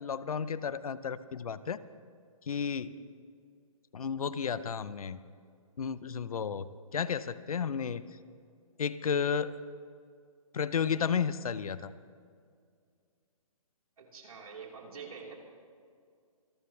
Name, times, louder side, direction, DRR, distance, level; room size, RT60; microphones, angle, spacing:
voice 1, 0.0-1.8 2.5-2.9 3.9-5.2 5.8-6.7 6.9-8.0 8.8-9.5 10.5-11.9, left 6 dB, 75° left, 16 dB, 0.7 m, -32 dB
voice 2, 14.0-15.3, right 5 dB, 75° right, -1 dB, 4.1 m, -46 dB
26.0 x 13.0 x 3.3 m, 2.2 s
hypercardioid pair, 160°, 19 cm